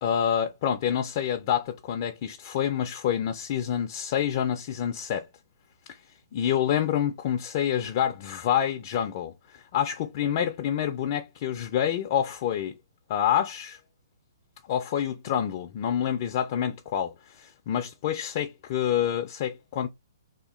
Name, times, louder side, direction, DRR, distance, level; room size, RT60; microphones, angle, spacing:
voice 1, 0.0-5.3 5.9-6.0 6.3-12.8 13.1-13.8 14.7-19.9, left 9 dB, 35° left, 0.4 m, -27 dB
2.9 x 2.4 x 3.6 m
hypercardioid pair, 155°, 2 cm